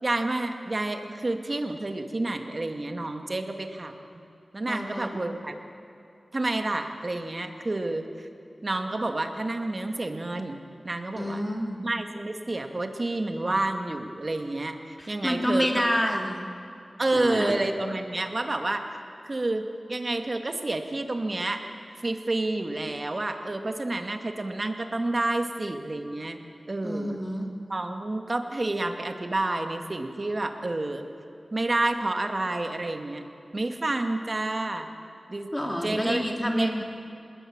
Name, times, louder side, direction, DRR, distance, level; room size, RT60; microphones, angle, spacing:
voice 1, 0.0-3.9 4.5-5.6 6.3-8.3 8.6-10.6 10.8-11.4 11.8-15.8 17.0-18.9 19.2-21.6 22.0-26.4 26.7-27.2 27.7-31.1 31.5-33.2 33.5-34.9 35.3-35.5 35.8-36.8, right 2 dB, 45° right, 5 dB, 2.4 m, -29 dB
voice 2, 4.7-5.2 11.2-11.8 15.0-16.4 17.1-17.6 26.8-27.5 35.5-36.8, equal, 15° left, 2 dB, 3.5 m, -28 dB
26.5 x 21.0 x 9.0 m, 2.8 s
wide cardioid pair, 75°, 0 cm